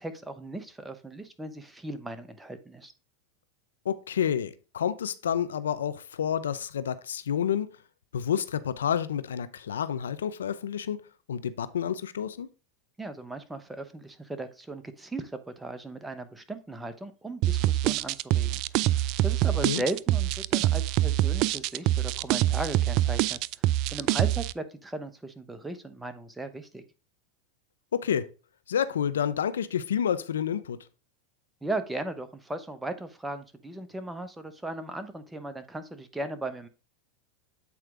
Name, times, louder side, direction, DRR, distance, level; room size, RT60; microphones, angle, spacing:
voice 1, 0.0-2.9 13.0-26.8 31.6-36.7, right 2 dB, 10° right, 1.0 m, -37 dB
voice 2, 3.8-7.7 8.1-11.0 11.3-12.5 19.6-19.8 27.9-28.3 28.7-30.8, left 8 dB, 90° left, 0.6 m, -29 dB
sound 1, 17.4-24.5, right 14 dB, 50° right, 0.3 m, -25 dB
8.5 x 4.5 x 3.7 m
hypercardioid pair, 105°, 0 cm